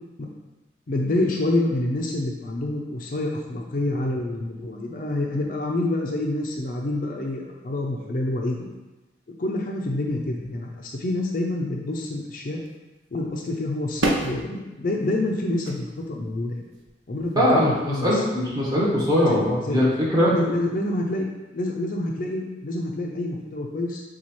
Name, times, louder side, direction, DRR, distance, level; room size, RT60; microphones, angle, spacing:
voice 1, 0.9-8.7 9.4-12.6 13.1-16.6 17.1-18.2 19.3-19.8 20.3-21.3 21.5-24.0, left 2 dB, 45° left, 0 dB, 0.5 m, -27 dB
sound 1, 12.7-12.8 13.2-13.6 14.0-14.4 15.3-16.0 16.7-16.9 17.3-17.5, right 2 dB, 85° right, 0.6 m, -27 dB
voice 2, 17.4-17.7 18.0-20.3, equal, 20° right, -7 dB, 1.1 m, -20 dB
7.0 x 2.3 x 3.0 m, 1.1 s
head